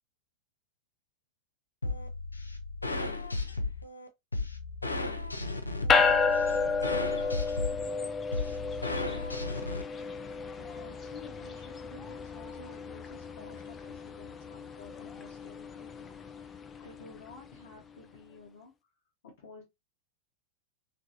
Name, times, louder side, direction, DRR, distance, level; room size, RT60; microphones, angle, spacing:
sound 1, 1.8-9.8, left 2 dB, 80° left, 0.4 m, -35 dB
sound 2, 5.9-17.5, left 5 dB, 20° left, 0.4 m, -32 dB
voice 1, 8.7-9.3 10.6-16.5 16.8-18.9 19.2-19.6, left 3 dB, 55° left, 1.1 m, -52 dB
3.1 x 2.7 x 2.6 m
figure-of-eight pair, 90°, 0 cm